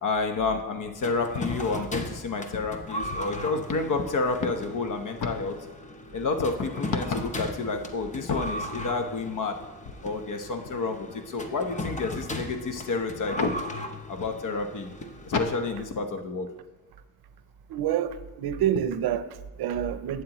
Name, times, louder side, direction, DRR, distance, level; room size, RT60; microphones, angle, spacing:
voice 1, 0.0-5.6 6.1-9.6 10.0-13.5 14.1-14.9 15.2-16.5, left 4 dB, 55° left, 6 dB, 1.0 m, -29 dB
sound 1, 1.0-15.7, left 1 dB, 20° left, 0.7 m, -37 dB
voice 2, 17.7-20.2, right 10 dB, 80° right, 12 dB, 0.6 m, -28 dB
11.5 x 8.5 x 3.0 m, 1.1 s
cardioid pair, 135°, 37 cm